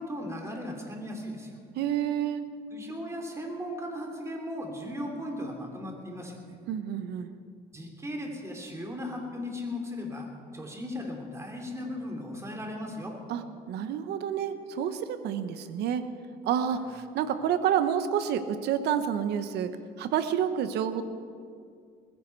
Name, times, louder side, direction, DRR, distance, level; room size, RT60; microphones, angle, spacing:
voice 1, 0.0-1.6 2.7-6.6 7.7-10.3 10.5-13.1 16.7-16.8, left 1 dB, 15° right, 2 dB, 3.1 m, -37 dB
voice 2, 1.8-2.5 6.7-7.4 13.3-16.0 16.4-21.0, right 9 dB, 75° right, 11 dB, 1.1 m, -29 dB
20.0 x 15.5 x 4.7 m, 2.2 s
cardioid pair, 110°, 17 cm